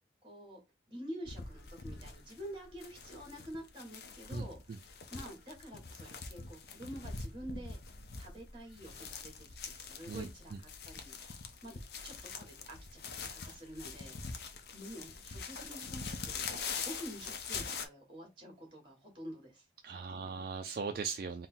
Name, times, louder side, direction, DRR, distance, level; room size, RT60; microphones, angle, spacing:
voice 1, 0.2-0.6 0.9-4.7 5.1-7.8 8.2-11.2 11.6-16.4 16.8-20.3, equal, 25° right, 1.7 m, -48 dB
sound 1, 1.2-17.9, left 5 dB, 60° left, 0.6 m, -44 dB
voice 2, 4.3-4.8 10.1-10.3 19.8-21.5, right 5 dB, 55° right, 0.3 m, -39 dB
3.7 x 2.1 x 4.2 m
head